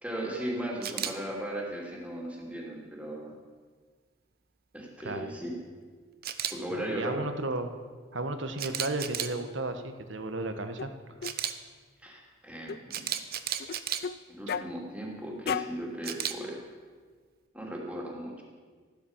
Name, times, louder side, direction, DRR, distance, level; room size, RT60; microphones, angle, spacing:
voice 1, 0.0-3.3 4.7-5.5 6.5-7.2 12.0-13.1 14.3-16.6 17.5-18.4, right 1 dB, 5° right, -2 dB, 2.9 m, -37 dB
Camera, 0.8-1.1 6.2-6.5 8.6-9.3 11.2-11.5 12.9-14.0 16.0-16.3, right 10 dB, 50° right, 0.8 m, -32 dB
voice 2, 6.7-7.7 8.1-10.9 11.2-11.3 14.5-14.6, right 2 dB, 65° right, 8 dB, 1.3 m, -34 dB
sound 1, 10.8-10.9 11.2-11.4 12.7-12.8 13.6-14.2 14.5-14.7 15.5-15.8, left 7 dB, 50° left, 0.4 m, -33 dB
15.0 x 12.0 x 7.3 m, 1.5 s
head